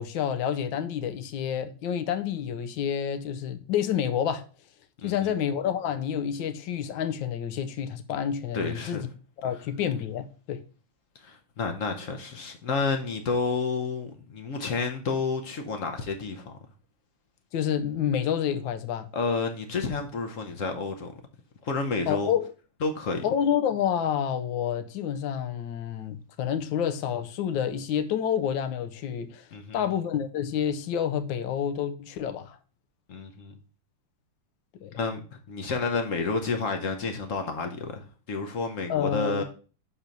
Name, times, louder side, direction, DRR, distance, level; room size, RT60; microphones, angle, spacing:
voice 1, 0.0-4.4 5.0-9.1 9.4-10.6 17.5-19.1 22.1-22.5 23.2-29.5 29.7-32.6 34.8-34.9 38.9-39.4, left 9 dB, 80° left, 1.4 m, -29 dB
voice 2, 5.0-5.3 8.5-9.0 11.1-16.5 19.1-21.1 21.6-22.3 22.8-23.2 29.5-29.9 33.1-33.6 34.9-39.4, left 4 dB, 60° left, 0.8 m, -30 dB
6.0 x 4.2 x 5.1 m
omnidirectional pair, 2.1 m